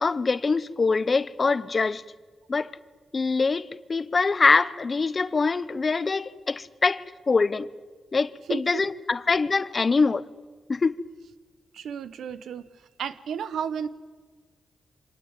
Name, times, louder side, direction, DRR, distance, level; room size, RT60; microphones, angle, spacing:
voice 1, 0.0-2.0 2.5-2.7 3.1-7.7 8.1-10.2 10.7-11.0, left 4 dB, 40° left, 0.8 m, -24 dB
voice 2, 8.5-8.8 11.7-12.6 13.0-13.9, right 7 dB, 85° right, 1.1 m, -32 dB
25.0 x 19.0 x 9.0 m
cardioid pair, 80°, 0 cm